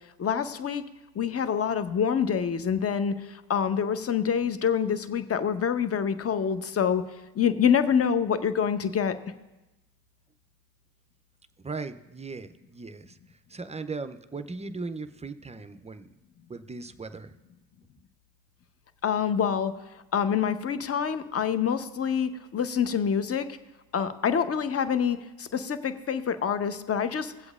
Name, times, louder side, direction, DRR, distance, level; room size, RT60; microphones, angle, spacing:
voice 1, 0.2-0.8 1.1-7.0 7.3-9.2 19.0-19.7 20.1-23.5 23.9-27.3, left 7 dB, 30° left, 11 dB, 0.8 m, -26 dB
voice 2, 11.6-16.1 16.5-17.3, right 4 dB, 15° right, 10 dB, 0.4 m, -38 dB
21.0 x 7.9 x 2.4 m, 1.0 s
hypercardioid pair, 60°, 49 cm